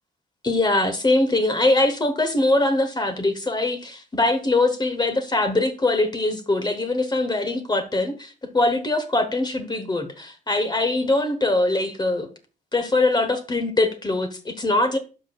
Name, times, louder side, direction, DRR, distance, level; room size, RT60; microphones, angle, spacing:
voice 1, 0.4-12.3 12.7-15.0, left 2 dB, 20° left, 1.1 m, -22 dB
11.5 x 6.1 x 2.4 m
cardioid pair, 90°, 20 cm